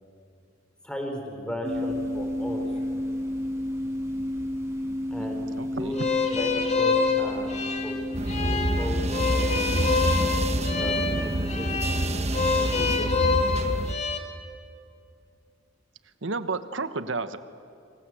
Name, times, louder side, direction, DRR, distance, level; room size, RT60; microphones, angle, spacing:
voice 1, 0.8-2.7 5.1-6.1 6.3-8.0 8.4-10.1 10.7-11.7 12.7-13.2, equal, 5° left, 3 dB, 4.4 m, -36 dB
sound 1, 1.6-13.2, left 1 dB, 15° right, 4.9 m, -32 dB
voice 2, 5.2-5.9 16.2-17.4, right 3 dB, 80° right, 11 dB, 1.3 m, -32 dB
sound 2, 5.9-14.2, left 5 dB, 35° left, 2.3 m, -27 dB
sound 3, 8.1-13.9, right 1 dB, 35° right, 1.2 m, -27 dB
29.0 x 26.0 x 7.8 m, 2.5 s
head